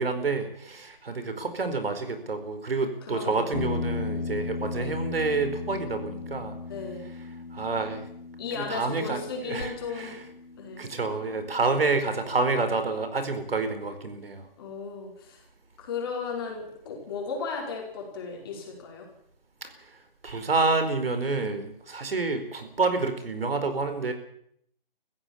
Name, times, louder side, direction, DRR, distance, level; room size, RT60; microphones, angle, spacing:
voice 1, 0.0-6.6 7.0-8.0 8.5-10.3 10.8-14.5 19.6-20.0 20.2-24.1, right 3 dB, 75° right, 8 dB, 4.6 m, -28 dB
voice 2, 3.1-3.5 6.7-7.1 8.4-10.1 10.6-10.9 14.6-15.4 15.8-19.1, left 5 dB, 25° left, 0 dB, 4.9 m, -35 dB
sound 1, 3.5-11.9, left 4 dB, 85° left, 3.6 m, -36 dB
24.0 x 15.5 x 7.2 m, 0.69 s
hypercardioid pair, 175°, 29 cm